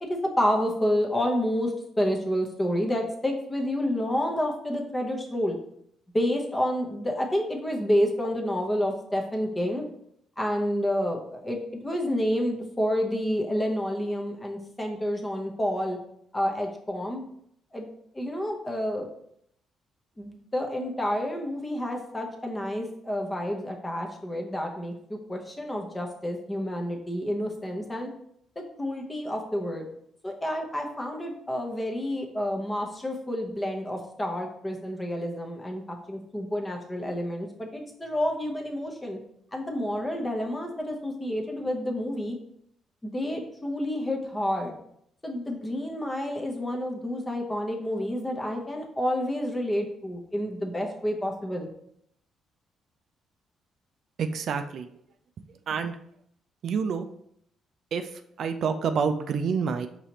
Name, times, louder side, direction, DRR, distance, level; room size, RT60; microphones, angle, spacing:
voice 1, 0.0-5.6 6.1-9.8 10.4-16.0 16.3-17.2 17.7-17.8 18.1-19.1 20.2-28.1 28.8-29.9 30.2-39.2 39.5-42.3 43.0-44.7 45.2-51.7, equal, 15° left, 1 dB, 0.9 m, -29 dB
voice 2, 54.2-54.9 55.7-56.0 56.6-57.1 57.9-58.1 58.4-59.9, right 6 dB, 65° right, 7 dB, 0.3 m, -27 dB
4.8 x 2.9 x 2.8 m, 0.70 s
cardioid pair, 90°, 0 cm